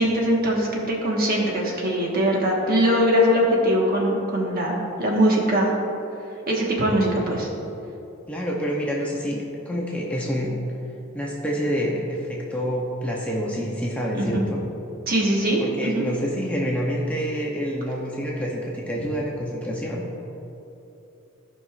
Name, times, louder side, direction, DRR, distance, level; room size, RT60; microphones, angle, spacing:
voice 1, 0.0-5.7 6.5-7.5 14.2-14.4 15.1-16.0, equal, 45° right, -2 dB, 1.3 m, -21 dB
voice 2, 8.3-10.5 11.1-14.6 15.6-20.0, equal, 5° left, -3 dB, 0.6 m, -27 dB
15.0 x 5.3 x 2.4 m, 2.9 s
head